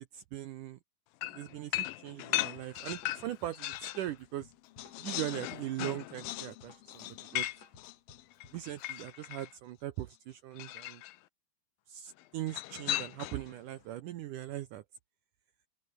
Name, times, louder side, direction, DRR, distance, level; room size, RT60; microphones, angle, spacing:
voice 1, 0.1-0.8 1.3-4.5 5.0-7.5 8.5-11.0 11.9-14.8, right 13 dB, 85° right, 1.8 m, -40 dB
sound 1, 1.2-4.1 4.5-9.5 10.6-11.2 12.5-13.5, left 16 dB, 75° left, 2.2 m, -38 dB
Drum kit, 2.6-9.0, left 3 dB, 40° left, 7.9 m, -60 dB
open air
omnidirectional pair, 4.9 m